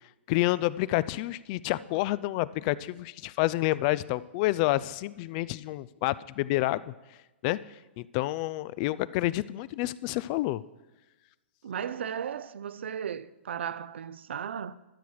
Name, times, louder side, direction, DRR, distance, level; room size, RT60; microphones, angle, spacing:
voice 1, 0.3-6.9 7.4-7.6 8.0-10.6, left 17 dB, 40° left, 0.3 m, -29 dB
voice 2, 11.6-14.7, right 8 dB, 70° right, 0.5 m, -35 dB
12.5 x 6.8 x 4.7 m
hypercardioid pair, 115°, 6 cm